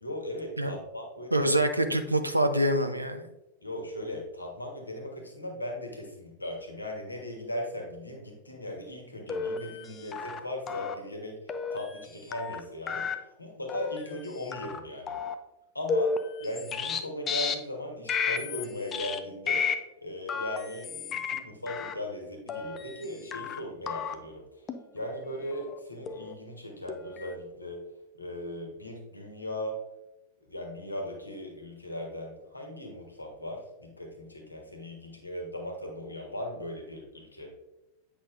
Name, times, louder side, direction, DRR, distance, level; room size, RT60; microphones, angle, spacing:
voice 1, 0.0-1.5 3.6-11.3 11.7-13.1 13.4-15.1 15.7-16.1 16.4-19.6 20.0-24.4 24.9-27.8 28.2-29.7 30.5-37.6, left 1 dB, 85° left, 2 dB, 1.3 m, -38 dB
voice 2, 1.3-3.3, right 1 dB, 85° right, 7 dB, 0.5 m, -25 dB
sound 1, 9.3-9.9 10.1-10.4 10.7-11.0 11.5-12.0 12.3-12.6 12.9-13.2 13.7-14.0 14.5-14.8 15.1-15.4 15.9-17.0 17.3-17.5 18.1-18.7 18.9-19.2 19.5-19.7 20.3-21.4 21.7-21.9 22.5-23.1 23.3-23.6 23.9-24.1 24.7-24.8 25.5-25.8 26.1-26.3 26.9-27.3, left 5 dB, 25° left, 0.5 m, -32 dB
8.5 x 5.5 x 2.6 m, 0.95 s
figure-of-eight pair, 90°, 0 cm